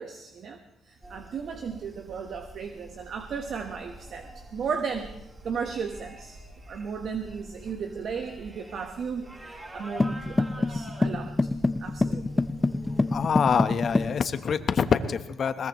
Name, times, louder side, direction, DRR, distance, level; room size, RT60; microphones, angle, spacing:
voice 1, 0.0-6.4 6.7-11.5 11.8-12.4, right 6 dB, 60° right, 5 dB, 1.3 m, -35 dB
sound 1, 1.0-14.1, right 1 dB, 20° right, 6.2 m, -46 dB
sound 2, 10.0-14.2, left 2 dB, 20° left, 0.5 m, -26 dB
voice 2, 13.1-15.7, left 6 dB, 50° left, 9 dB, 1.2 m, -25 dB
21.5 x 20.5 x 3.2 m, 0.85 s
cardioid pair, 90°, 0 cm